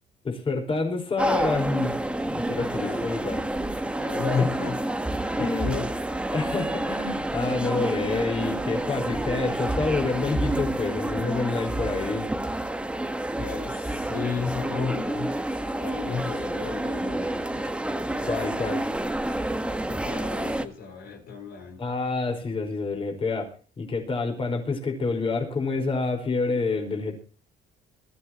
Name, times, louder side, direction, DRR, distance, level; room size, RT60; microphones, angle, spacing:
voice 1, 0.2-1.9 2.3-3.4 4.4-4.5 5.4-5.7 6.3-12.3 16.1-16.2 18.2-18.8 21.8-23.5 23.8-27.2, left 3 dB, 30° left, 5.0 m, -28 dB
sound 1, 1.2-20.6, right 1 dB, 5° right, 1.4 m, -29 dB
voice 2, 2.7-3.2 3.5-3.6 4.0-5.9 13.3-15.4 15.8-17.7 19.9-21.9, left 6 dB, 65° left, 4.6 m, -33 dB
22.0 x 13.5 x 3.0 m
cardioid pair, 110°, 17 cm